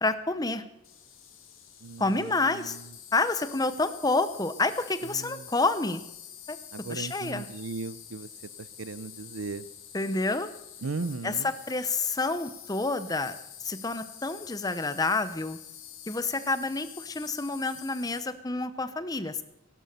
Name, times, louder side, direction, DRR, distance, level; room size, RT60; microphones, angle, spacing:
voice 1, 0.0-0.6 2.0-2.8 3.1-6.0 6.5-6.6 6.9-7.5 9.9-10.5 11.2-13.4 13.6-15.6 16.1-19.4, left 3 dB, 20° left, 12 dB, 0.8 m, -28 dB
Insect, 0.8-18.2, left 9 dB, 80° left, 3.0 m, -47 dB
voice 2, 1.8-2.4 6.7-8.3 8.8-9.6 10.8-11.5, right 3 dB, 85° right, 17 dB, 0.7 m, -36 dB
17.5 x 12.0 x 6.8 m, 0.87 s
head